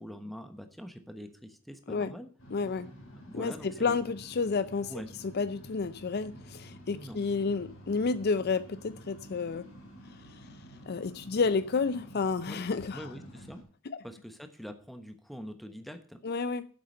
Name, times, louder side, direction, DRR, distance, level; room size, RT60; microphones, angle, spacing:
voice 1, 0.0-2.3 3.3-3.9 4.9-5.1 6.9-7.2 12.4-12.6 12.9-13.6 14.0-16.2, equal, ahead, 1.1 m, -44 dB
sound 1, 2.4-13.6, equal, 65° left, 4.1 m, -50 dB
voice 2, 2.5-2.9 3.3-4.9 5.2-9.7 10.9-13.1 13.9-14.0 16.2-16.7, left 4 dB, 50° left, 0.5 m, -30 dB
9.5 x 7.8 x 6.5 m
head